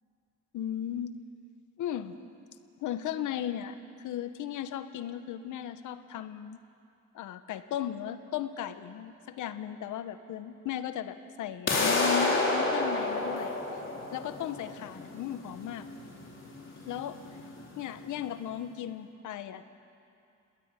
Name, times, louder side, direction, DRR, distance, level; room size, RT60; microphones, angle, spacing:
voice 1, 0.5-1.1 1.8-2.1 2.8-6.6 7.1-13.5 14.1-15.9 16.9-17.2 17.8-19.6, left 10 dB, 80° left, 11 dB, 1.1 m, -36 dB
sound 1, 11.7-17.6, left 2 dB, 40° left, 4.4 m, -30 dB
20.0 x 19.0 x 9.1 m, 2.6 s
cardioid pair, 90°, 30 cm